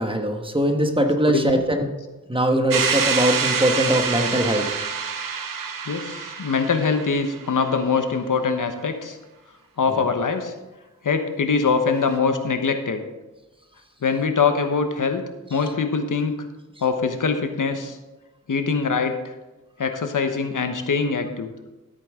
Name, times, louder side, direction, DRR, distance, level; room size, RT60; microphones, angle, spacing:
voice 1, 0.0-1.9 2.3-4.8 9.9-10.0, right 1 dB, 15° right, 4 dB, 1.3 m, -21 dB
voice 2, 1.3-1.6 5.9-9.2 9.8-10.5 11.0-13.0 14.0-15.2 15.5-16.3 16.8-18.0 18.5-19.2 19.8-21.5, left 5 dB, 70° left, 7 dB, 1.1 m, -23 dB
sound 1, 2.7-7.5, right 6 dB, 85° right, 0.9 m, -26 dB
13.5 x 8.5 x 3.7 m, 1.1 s
wide cardioid pair, 70°, 32 cm